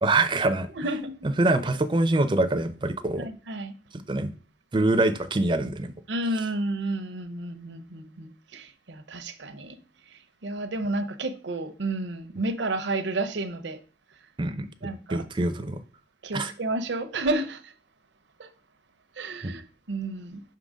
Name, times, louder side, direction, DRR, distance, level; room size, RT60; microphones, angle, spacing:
voice 1, 0.0-0.7 1.4-3.3 4.1-4.3 4.7-5.9 14.4-15.8 16.3-16.5 19.4-19.6, right 2 dB, 25° right, 0.5 m, -24 dB
voice 2, 0.8-1.1 3.2-3.7 6.1-9.8 10.4-13.8 14.8-15.2 16.2-17.7 18.4-18.5 19.2-20.4, right 2 dB, 75° right, 0.7 m, -31 dB
5.8 x 3.8 x 5.0 m
head